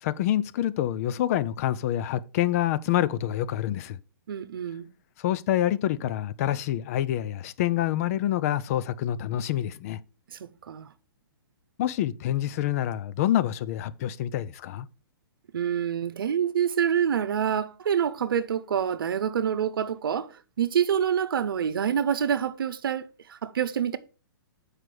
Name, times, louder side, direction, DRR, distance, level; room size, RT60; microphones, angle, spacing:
voice 1, 0.0-4.0 5.2-10.0 11.8-14.9, left 12 dB, 40° left, 0.5 m, -27 dB
voice 2, 4.3-4.9 10.3-10.9 15.5-24.0, right 8 dB, 70° right, 0.8 m, -27 dB
7.5 x 4.9 x 4.8 m
hypercardioid pair, 130°, 12 cm